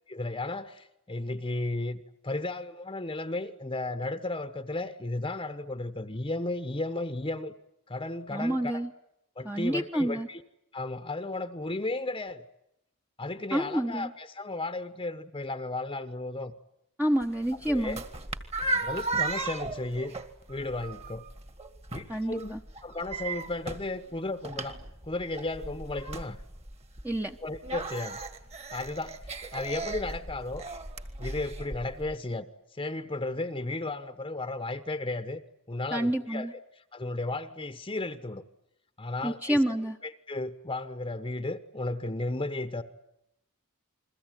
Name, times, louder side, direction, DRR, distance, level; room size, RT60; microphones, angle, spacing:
voice 1, 0.1-7.5 7.9-8.8 9.4-10.4 10.7-12.4 13.2-16.5 17.7-18.0 18.7-20.2 20.5-21.3 21.9-24.8 25.0-26.4 27.4-28.2 28.7-30.7 31.2-32.5 32.7-35.4 35.7-36.5 36.9-38.4 39.0-39.6 40.0-42.8, left 2 dB, 25° left, 10 dB, 1.0 m, -34 dB
voice 2, 8.3-8.9 9.4-10.3 13.5-14.1 17.0-18.0 22.1-22.6 27.0-27.4 35.9-36.5 39.2-40.0, right 1 dB, 10° right, 3 dB, 1.0 m, -28 dB
sound 1, 17.2-32.1, right 2 dB, 30° right, 2.1 m, -36 dB
29.5 x 22.0 x 9.1 m, 0.83 s
head